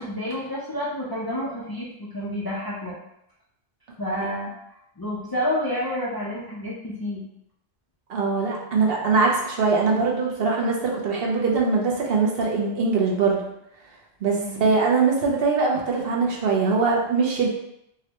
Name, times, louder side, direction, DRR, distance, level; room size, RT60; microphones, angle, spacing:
voice 1, 0.0-3.0 4.0-4.5 5.0-7.2 14.4-14.6, left 1 dB, 30° left, -6 dB, 0.4 m, -29 dB
voice 2, 8.1-13.4 14.2-17.5, right 4 dB, 65° right, -1 dB, 0.9 m, -22 dB
3.7 x 2.1 x 2.9 m, 0.79 s
omnidirectional pair, 1.1 m